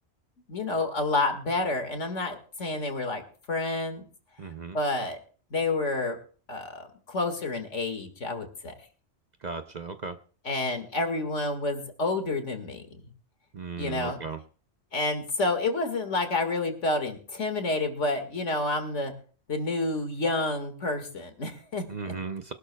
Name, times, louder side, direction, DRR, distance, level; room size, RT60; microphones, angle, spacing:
voice 1, 0.5-3.2 3.5-4.0 4.7-5.2 5.5-6.2 6.5-8.7 10.4-13.1 13.8-14.2 14.9-19.1 19.5-22.2, left 2 dB, 75° left, 7 dB, 2.2 m, -29 dB
voice 2, 4.4-4.8 9.4-10.2 13.5-14.4 21.9-22.5, right 4 dB, 45° right, 8 dB, 0.7 m, -36 dB
23.5 x 12.0 x 2.2 m, 0.40 s
omnidirectional pair, 1.3 m